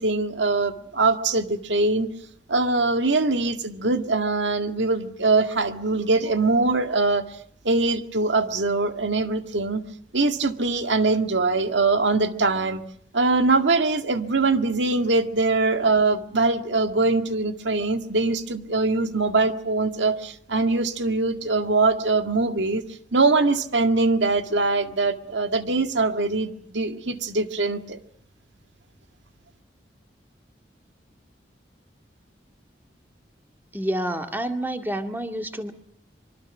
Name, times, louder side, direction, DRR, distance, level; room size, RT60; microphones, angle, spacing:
voice 1, 0.0-2.1 2.5-7.3 7.6-9.8 10.1-12.8 13.1-22.8 23.1-28.0, right 3 dB, 85° right, 7 dB, 1.9 m, -22 dB
voice 2, 33.7-35.7, right 1 dB, 10° right, 5 dB, 2.1 m, -28 dB
25.5 x 24.0 x 6.2 m, 0.67 s
head